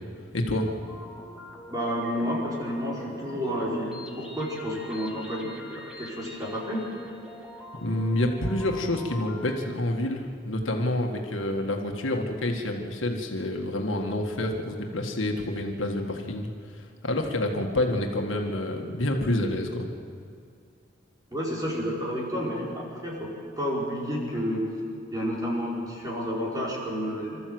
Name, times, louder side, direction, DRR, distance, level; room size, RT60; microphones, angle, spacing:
voice 1, 0.3-0.7 7.8-19.9, left 1 dB, 80° left, 2 dB, 1.9 m, -28 dB
sound 1, 0.5-9.5, left 1 dB, 5° right, 3.0 m, -45 dB
voice 2, 1.7-6.8 21.3-24.7 25.1-27.4, equal, 20° right, -5 dB, 4.8 m, -30 dB
26.0 x 13.5 x 7.9 m, 2.4 s
head